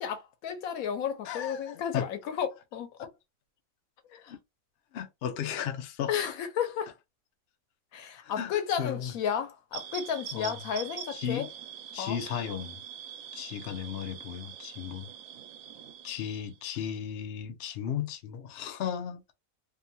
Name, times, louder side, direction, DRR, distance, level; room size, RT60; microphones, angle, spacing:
voice 1, 0.0-3.1 4.1-4.3 6.1-6.9 7.9-11.5 12.0-12.2, left 8 dB, 85° left, 1.1 m, -33 dB
voice 2, 1.2-2.1 3.0-3.1 4.3-4.4 4.9-6.3 8.2-9.1 10.3-10.6 11.1-11.5 11.9-12.8 13.3-15.1 16.0-19.2, left 8 dB, 60° left, 0.7 m, -35 dB
sound 1, 9.7-16.6, right 9 dB, 85° right, 1.1 m, -44 dB
2.7 x 2.2 x 2.6 m
omnidirectional pair, 1.4 m